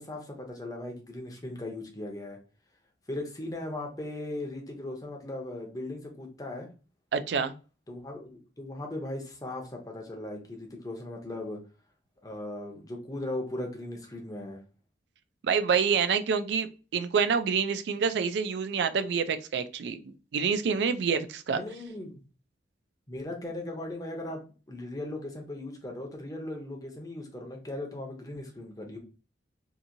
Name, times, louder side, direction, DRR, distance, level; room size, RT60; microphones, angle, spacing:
voice 1, 0.0-2.4 3.1-6.7 7.9-11.6 12.2-14.6 21.5-22.1 23.1-29.0, left 1 dB, 20° left, 1 dB, 0.6 m, -38 dB
voice 2, 7.1-7.5 15.4-21.6, right 6 dB, 70° right, 10 dB, 0.3 m, -27 dB
2.8 x 2.6 x 2.5 m, 0.35 s
head